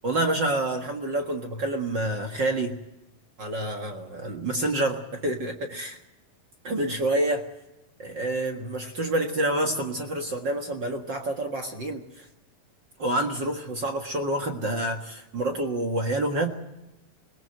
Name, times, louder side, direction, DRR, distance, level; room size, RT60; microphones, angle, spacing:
voice 1, 0.0-2.8 3.4-6.0 6.6-7.5 8.0-12.3 13.0-16.5, right 1 dB, 45° right, 3 dB, 1.5 m, -28 dB
22.0 x 21.0 x 7.9 m, 0.94 s
omnidirectional pair, 4.2 m